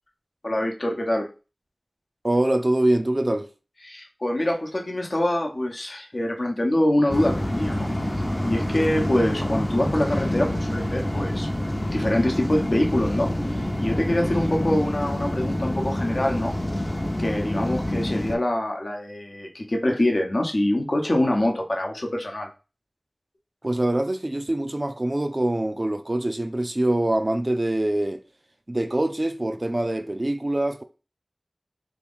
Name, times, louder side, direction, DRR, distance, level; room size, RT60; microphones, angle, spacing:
voice 1, 0.4-1.3 3.8-7.9 8.4-11.5 11.9-16.5 16.8-16.9 17.2-22.5, left 1 dB, 60° left, 0.8 m, -25 dB
voice 2, 2.2-3.5 23.6-28.2 28.7-30.8, right 1 dB, 40° right, 0.4 m, -24 dB
sound 1, 7.1-18.4, left 1 dB, 30° left, 0.6 m, -27 dB
2.9 x 2.5 x 3.5 m
wide cardioid pair, 40°, 0 cm